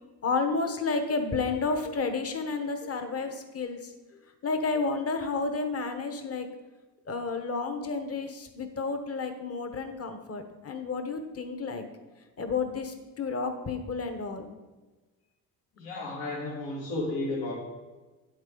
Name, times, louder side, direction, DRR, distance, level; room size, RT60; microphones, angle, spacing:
voice 1, 0.2-3.8 4.4-6.5 7.1-11.8 12.4-14.4, left 4 dB, 40° left, 7 dB, 1.1 m, -31 dB
voice 2, 15.8-17.5, left 2 dB, 85° left, -6 dB, 2.1 m, -33 dB
9.4 x 7.8 x 3.9 m, 1.2 s
cardioid pair, 85°, 37 cm